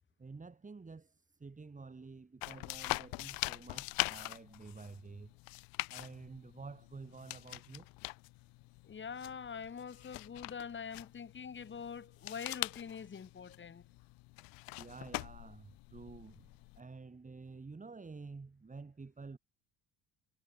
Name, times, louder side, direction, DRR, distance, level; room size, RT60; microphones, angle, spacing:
voice 1, 0.2-5.3 5.9-7.9 14.8-19.4, right 4 dB, 20° right, 6.6 m, -50 dB
sound 1, 2.4-16.8, left 25 dB, 70° left, 0.6 m, -43 dB
voice 2, 8.8-13.8, left 6 dB, 30° left, 2.7 m, -44 dB
supercardioid pair, 95°, 37 cm